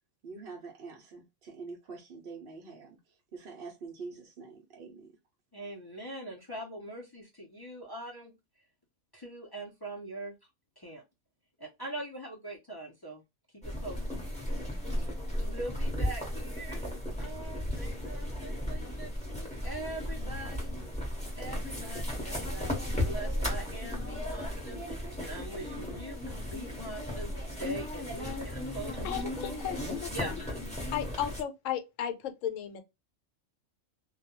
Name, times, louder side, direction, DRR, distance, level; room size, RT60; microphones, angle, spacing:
voice 1, 0.2-5.2, right 4 dB, 60° right, 0.7 m, -45 dB
voice 2, 5.5-8.3 9.1-10.3 10.8-11.0 11.6-13.2 13.6-14.2 15.4-20.7 21.4-29.6 30.1-30.6, right 1 dB, 35° left, 0.4 m, -43 dB
sound 1, 13.6-31.4, left 1 dB, 5° left, 0.8 m, -35 dB
voice 3, 29.0-30.4 30.9-32.8, left 10 dB, 75° left, 0.9 m, -35 dB
2.3 x 2.1 x 2.9 m
omnidirectional pair, 1.3 m